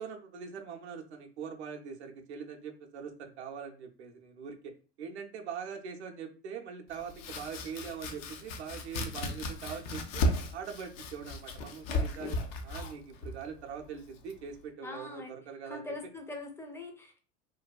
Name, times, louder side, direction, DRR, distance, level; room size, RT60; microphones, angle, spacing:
voice 1, 0.0-4.7 5.0-10.2 10.5-15.8, right 6 dB, 80° right, 2 dB, 0.5 m, -42 dB
Domestic sounds home sounds, 6.9-14.6, left 1 dB, 65° left, 0.5 m, -36 dB
voice 2, 14.8-15.3 15.6-17.2, left 2 dB, 10° left, 4 dB, 0.5 m, -42 dB
2.6 x 2.2 x 2.2 m, 0.36 s
hypercardioid pair, 85°, 33 cm